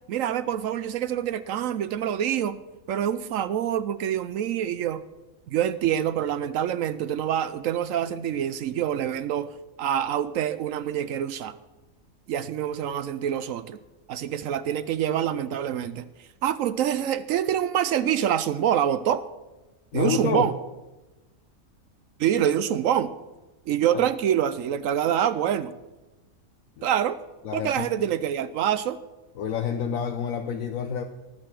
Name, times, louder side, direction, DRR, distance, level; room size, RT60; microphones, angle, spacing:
voice 1, 0.1-2.6 2.9-5.0 5.5-9.5 9.8-11.6 12.3-13.8 14.1-16.1 16.4-19.2 19.9-20.5 22.2-23.1 23.7-25.7 26.8-27.2 27.5-29.0, right 10 dB, 75° right, 14 dB, 0.9 m, -26 dB
voice 2, 19.9-20.5 23.9-24.0 26.8-27.0 27.4-28.1 29.4-31.0, left 7 dB, 70° left, 5 dB, 1.1 m, -29 dB
19.0 x 6.6 x 6.0 m, 1.1 s
omnidirectional pair, 1.5 m